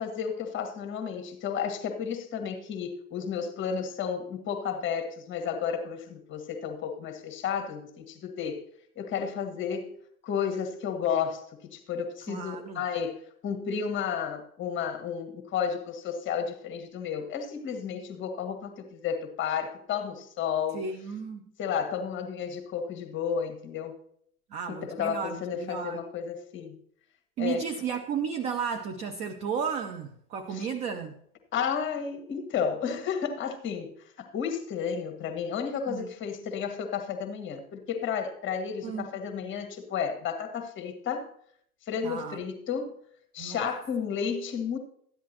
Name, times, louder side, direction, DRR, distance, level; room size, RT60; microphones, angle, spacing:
voice 1, 0.0-8.6 9.0-10.0 10.2-20.8 21.6-24.0 24.7-26.8 27.4-27.7 30.5-30.7 31.5-41.3 41.8-42.9 43.3-44.8, left 7 dB, 25° left, 6 dB, 1.5 m, -32 dB
voice 2, 12.3-12.8 20.7-21.5 24.5-26.0 27.4-31.2 35.9-36.1 38.8-39.1 42.0-42.4 43.4-43.7, right 6 dB, 15° right, 6 dB, 0.4 m, -33 dB
13.5 x 10.0 x 2.9 m, 0.67 s
figure-of-eight pair, 90°, 44 cm